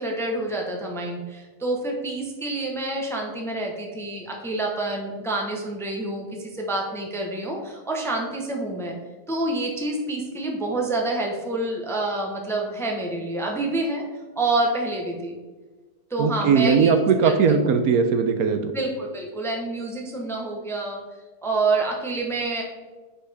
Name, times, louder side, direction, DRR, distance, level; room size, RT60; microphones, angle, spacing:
voice 1, 0.0-8.9 9.3-14.0 14.4-15.4 16.1-16.9 17.2-17.7 18.7-21.0 21.4-22.6, right 2 dB, ahead, 0 dB, 0.8 m, -27 dB
voice 2, 16.2-18.7, right 5 dB, 75° right, 7 dB, 1.1 m, -19 dB
9.8 x 4.4 x 3.4 m, 1.3 s
omnidirectional pair, 1.7 m